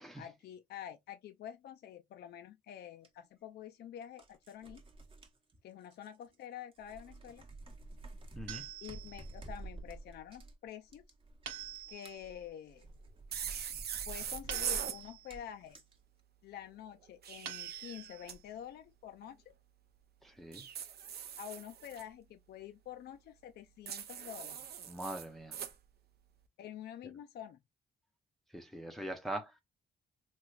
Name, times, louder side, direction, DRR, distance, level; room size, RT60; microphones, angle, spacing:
voice 1, 0.1-4.8 5.6-7.5 8.8-11.0 11.9-12.9 14.1-15.8 16.4-19.5 21.4-24.7 26.6-27.6, left 10 dB, 55° left, 0.4 m, -48 dB
sound 1, 3.0-3.1 4.0-6.4 6.7-16.0, right 2 dB, 25° right, 0.9 m, -50 dB
voice 2, 8.4-8.7 20.2-20.7 24.9-25.6 28.5-29.6, right 1 dB, ahead, 0.6 m, -42 dB
sound 2, 8.5-9.4 11.5-12.3 14.5-15.4 17.4-18.4, right 10 dB, 85° right, 1.1 m, -46 dB
sound 3, 13.3-15.0 17.0-18.4 20.5-22.0 23.9-25.7, right 8 dB, 55° right, 0.6 m, -41 dB
3.2 x 2.9 x 2.3 m
cardioid pair, 90°, 20 cm